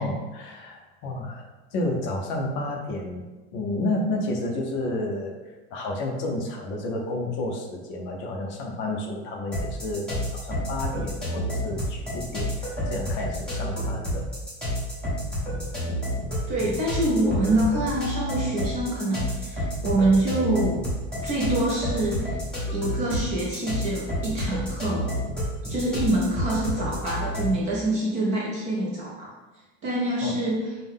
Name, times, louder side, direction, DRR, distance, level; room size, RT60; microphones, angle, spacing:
voice 1, 0.0-1.4 1.7-3.2 3.5-5.4 5.7-14.3 30.2-30.4, left 2 dB, 35° left, 1 dB, 0.5 m, -31 dB
sound 1, 9.5-27.6, equal, ahead, 0.9 m, -30 dB
voice 2, 16.5-20.8 21.2-22.3 22.7-25.1 25.7-29.3 29.8-30.7, right 1 dB, 20° right, -4 dB, 0.3 m, -25 dB
5.3 x 2.1 x 3.5 m, 1.2 s
cardioid pair, 175°, 35 cm